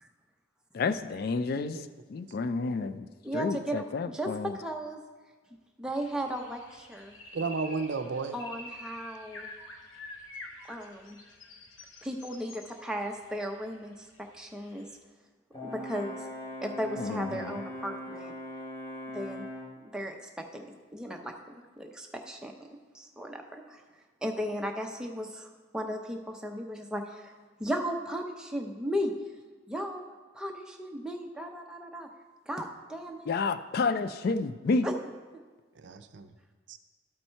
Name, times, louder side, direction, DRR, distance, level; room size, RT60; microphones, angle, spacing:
voice 1, 0.7-1.8 2.1-3.1 3.3-4.5 17.0-17.5 33.3-34.9, left 4 dB, 50° left, 12 dB, 0.3 m, -30 dB
voice 2, 1.5-1.9 7.3-8.4 35.8-36.3 36.7-36.8, right 4 dB, 60° right, 9 dB, 0.5 m, -33 dB
voice 3, 3.2-5.0 5.8-7.2 8.3-9.5 10.7-11.2 12.0-14.9 15.6-16.3 16.6-18.3 19.1-19.5 19.8-20.7 20.9-22.5 22.9-23.8 24.2-27.3 27.6-29.1 29.7-30.0 30.3-32.1 32.5-33.3 34.8-34.9, equal, 5° right, 2 dB, 0.6 m, -36 dB
sound 1, 5.9-15.0, left 2 dB, 90° left, 1.0 m, -48 dB
Brass instrument, 15.5-19.8, left 1 dB, 25° left, 1.5 m, -40 dB
12.5 x 4.2 x 4.5 m, 1.4 s
head